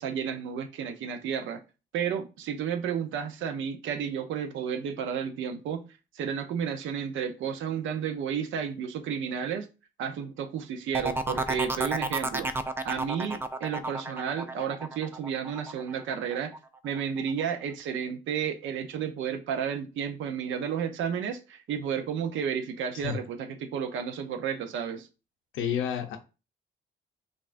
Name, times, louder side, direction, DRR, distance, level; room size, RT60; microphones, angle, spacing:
voice 1, 0.0-1.6 1.9-5.9 6.1-9.7 10.0-12.6 12.8-16.5 16.8-25.1, right 7 dB, 75° right, 0.6 m, -32 dB
sound 1, 10.9-16.6 17.0-17.4, right 2 dB, 10° right, 0.3 m, -32 dB
voice 2, 25.5-26.2, left 9 dB, 85° left, 0.7 m, -29 dB
5.3 x 2.4 x 2.5 m
cardioid pair, 90°, 20 cm